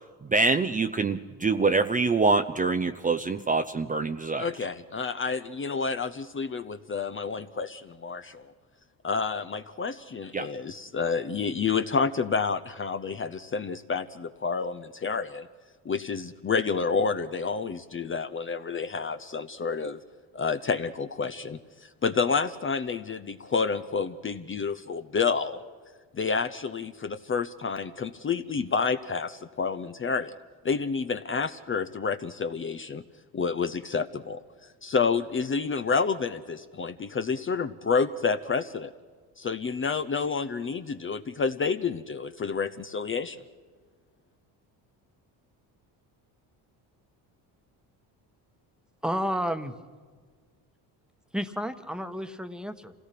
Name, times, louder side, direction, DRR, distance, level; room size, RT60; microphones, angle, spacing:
voice 1, 0.3-4.5 10.3-10.5, right 3 dB, 20° right, 8 dB, 0.6 m, -25 dB
voice 2, 4.4-8.5 9.0-15.5 15.8-20.0 20.3-25.6 26.1-30.4 30.6-33.0 33.3-34.4 34.8-38.9 39.4-43.4, left 5 dB, 30° left, 10 dB, 0.7 m, -29 dB
voice 3, 49.0-49.7 51.3-52.9, equal, ahead, 9 dB, 1.2 m, -31 dB
26.0 x 17.0 x 5.9 m, 1.6 s
cardioid pair, 95°, 42 cm